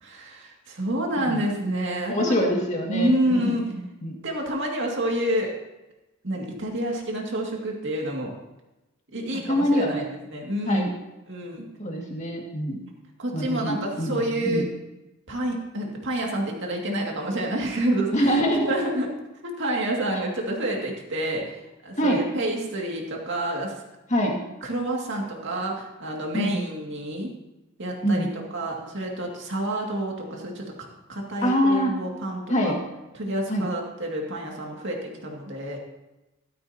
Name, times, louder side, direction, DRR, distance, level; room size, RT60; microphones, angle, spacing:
voice 1, 0.0-2.5 2.9-3.7 4.2-5.5 6.2-8.3 9.1-10.9 11.3-11.6 13.2-14.6 15.3-19.1 19.4-21.4 21.8-23.7 24.4-27.3 27.8-28.3 28.5-32.8 33.1-35.8, right 1 dB, 55° right, 0 dB, 2.3 m, -28 dB
voice 2, 2.1-4.2 9.3-10.1 10.7-10.9 11.8-12.8 13.3-14.7 18.1-18.6 20.1-20.2 22.0-22.2 24.1-24.3 26.3-26.6 28.0-28.3 31.4-31.9 32.5-32.8 33.5-33.7, equal, 30° left, 0 dB, 2.1 m, -25 dB
13.0 x 13.0 x 2.9 m, 1.0 s
head